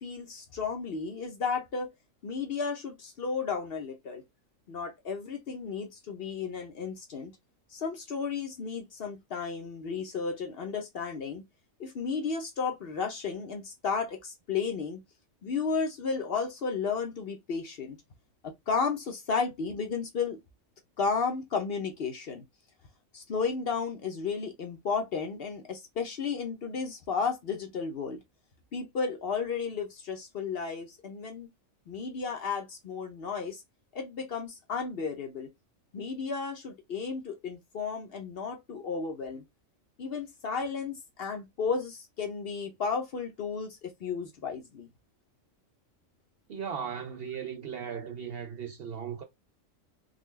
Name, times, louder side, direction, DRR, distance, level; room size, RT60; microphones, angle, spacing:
voice 1, 0.0-1.9 2.2-4.2 4.7-7.3 7.7-11.4 11.8-15.0 15.4-18.0 18.4-20.4 21.0-22.4 23.1-28.2 28.7-31.5 31.9-33.6 33.9-35.5 35.9-39.4 40.0-44.9, left 5 dB, 55° left, 0.8 m, -33 dB
voice 2, 46.5-49.2, right 7 dB, 60° right, 0.6 m, -37 dB
3.9 x 2.3 x 3.1 m
omnidirectional pair, 1.4 m